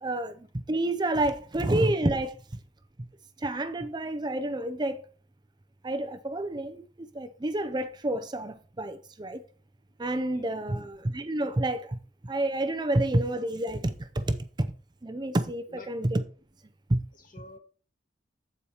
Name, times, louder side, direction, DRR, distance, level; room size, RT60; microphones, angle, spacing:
voice 1, 0.0-2.4 3.4-5.0 5.8-9.4 10.0-12.0 12.2-14.7 15.0-16.2 16.9-17.0, right 1 dB, 25° right, 0.5 m, -29 dB
voice 2, 17.2-17.6, left 2 dB, 50° left, 1.6 m, -50 dB
14.0 x 4.8 x 2.9 m
head